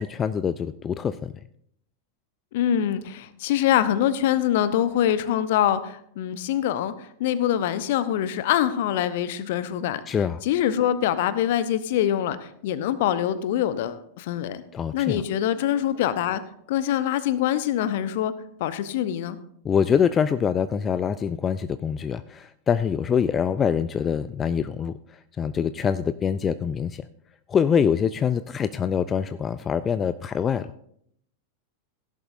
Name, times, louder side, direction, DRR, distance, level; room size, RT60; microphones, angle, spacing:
voice 1, 0.0-1.3 10.1-10.4 14.7-15.2 19.6-24.9 25.4-27.0 27.5-30.7, left 7 dB, 25° left, 13 dB, 0.4 m, -24 dB
voice 2, 2.5-10.2 10.4-14.6 14.9-16.4 16.7-18.3 18.6-19.4, left 11 dB, 50° left, 14 dB, 0.8 m, -24 dB
17.0 x 11.0 x 2.6 m, 0.71 s
figure-of-eight pair, 90°, 0 cm